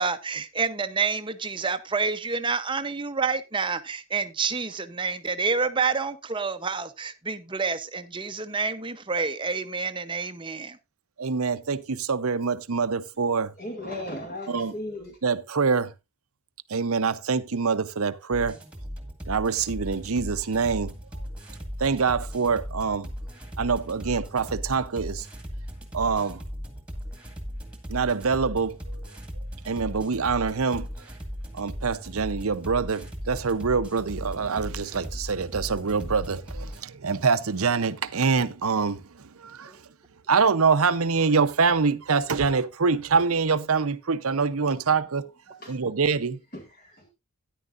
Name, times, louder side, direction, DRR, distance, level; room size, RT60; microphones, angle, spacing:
voice 1, 0.0-10.8 39.6-39.8, right 4 dB, 20° right, 0.8 m, -28 dB
voice 2, 11.2-13.5 14.5-14.7 15.2-15.9 16.7-18.6 19.3-20.9 21.8-23.1 23.6-25.3 25.9-26.4 27.9-29.0 29.7-30.9 31.5-39.1 39.4-39.7 40.3-46.4, right 5 dB, 75° right, 0.7 m, -25 dB
voice 3, 13.6-15.1 45.6-45.7 46.5-47.1, left 1 dB, 40° left, 2.0 m, -36 dB
sound 1, 18.3-36.8, equal, 5° right, 1.8 m, -37 dB
13.5 x 10.0 x 2.5 m
head